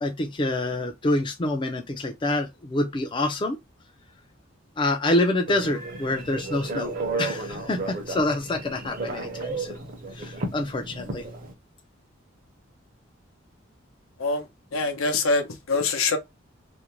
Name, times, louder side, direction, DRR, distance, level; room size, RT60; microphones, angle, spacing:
voice 1, 0.0-3.6 4.8-11.3, left 2 dB, 25° left, 0.4 m, -27 dB
Telephone, 5.5-11.5, right 3 dB, 40° right, 0.7 m, -33 dB
voice 2, 14.7-16.2, left 3 dB, 85° left, 0.6 m, -24 dB
2.5 x 2.1 x 2.9 m
head